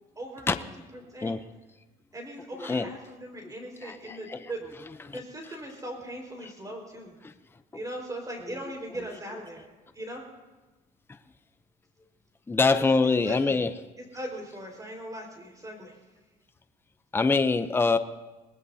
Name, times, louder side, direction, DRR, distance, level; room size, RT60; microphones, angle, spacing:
voice 1, 0.1-0.5 1.1-1.3 2.1-4.6 5.1-7.1 7.7-9.6 9.9-10.2 12.8-12.9 13.2-13.6 14.1-16.0, right 1 dB, 20° right, 1 dB, 4.8 m, -39 dB
voice 2, 2.6-2.9 3.4-3.5 3.8-4.5 5.0-5.2 6.4-6.5 7.2-7.3 8.5-8.6 12.5-13.7 17.1-18.0, left 4 dB, 15° left, 9 dB, 0.6 m, -25 dB
25.5 x 19.0 x 2.8 m, 1.2 s
cardioid pair, 110°, 17 cm